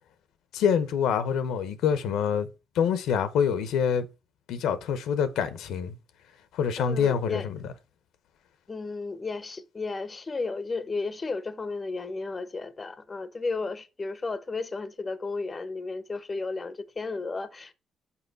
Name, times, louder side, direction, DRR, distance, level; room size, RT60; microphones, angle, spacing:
voice 1, 0.5-2.5 2.7-4.1 4.5-6.0 6.5-7.7, left 7 dB, 85° left, 0.8 m, -26 dB
voice 2, 6.8-7.5 8.7-17.7, left 3 dB, 30° left, 0.7 m, -33 dB
5.7 x 5.1 x 4.0 m
cardioid pair, 90°, 0 cm